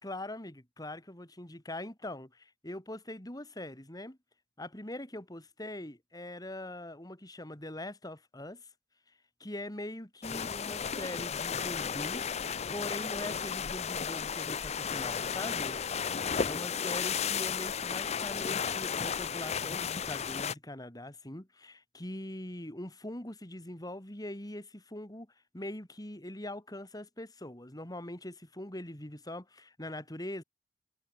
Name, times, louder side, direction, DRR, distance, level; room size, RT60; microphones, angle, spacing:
voice 1, 0.0-4.2 4.6-8.7 9.4-12.4 12.7-15.8 16.1-25.3 25.5-30.4, left 1 dB, 20° left, 3.1 m, -42 dB
sound 1, 10.2-20.5, left 7 dB, 40° left, 0.6 m, -34 dB
head